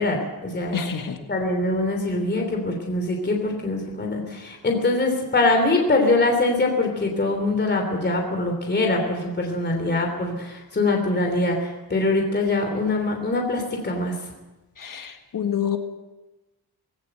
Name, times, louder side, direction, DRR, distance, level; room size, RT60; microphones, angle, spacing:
voice 1, 0.0-0.8 1.3-14.1, left 2 dB, 30° left, 2 dB, 3.1 m, -23 dB
voice 2, 0.7-1.2 14.8-15.8, left 8 dB, 60° left, 6 dB, 1.7 m, -27 dB
19.5 x 17.0 x 7.9 m, 1.1 s
wide cardioid pair, 170°, 37 cm